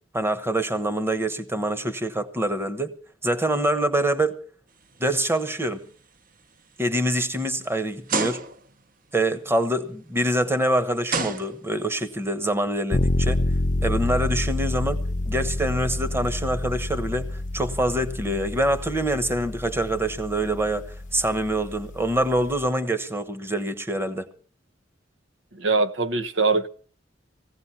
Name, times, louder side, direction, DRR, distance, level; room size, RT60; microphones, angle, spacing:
voice 1, 0.1-2.9 3.2-4.4 5.0-5.8 6.8-8.4 9.1-13.4 13.8-24.3, right 1 dB, 15° right, 1.1 m, -25 dB
sound 1, 4.9-5.3 5.8-5.9 6.6-6.7 8.1-8.8 10.3-10.4 11.1-12.0, right 4 dB, 50° right, 0.9 m, -29 dB
sound 2, 12.9-22.7, left 2 dB, 45° left, 0.7 m, -28 dB
voice 2, 25.5-26.7, right 3 dB, 85° right, 1.0 m, -22 dB
19.0 x 16.0 x 4.3 m
head